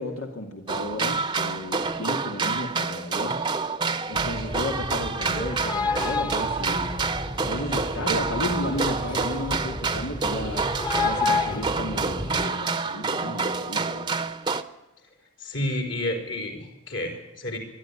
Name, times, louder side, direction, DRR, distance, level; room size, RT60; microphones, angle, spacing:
voice 1, 0.0-3.5 4.1-7.0 7.4-10.7 11.0-14.1, left 1 dB, 85° left, 2 dB, 2.4 m, -33 dB
sound 1, 0.7-14.6, right 4 dB, 20° right, 0.8 m, -28 dB
sound 2, 4.1-12.4, left 3 dB, 20° left, 1.2 m, -31 dB
voice 2, 15.4-17.6, left 1 dB, 55° left, 5 dB, 4.7 m, -30 dB
23.0 x 12.0 x 9.8 m, 1.1 s
head